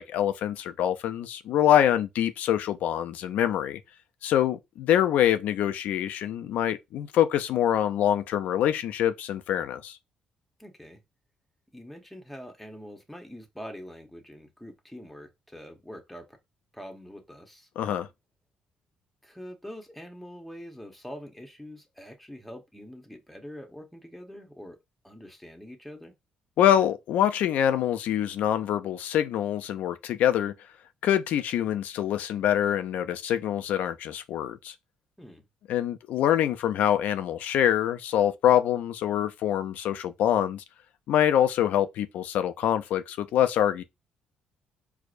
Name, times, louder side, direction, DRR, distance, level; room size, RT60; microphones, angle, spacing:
voice 1, 0.0-3.8 4.2-10.0 17.8-18.1 26.6-30.5 31.0-34.7 35.7-40.6 41.1-43.8, left 10 dB, 75° left, 0.4 m, -25 dB
voice 2, 10.6-11.0 11.7-16.4 16.7-17.7 19.2-24.8 25.0-26.1 35.2-35.5, equal, 5° left, 0.9 m, -44 dB
4.6 x 2.1 x 2.5 m
cardioid pair, 85°, 3 cm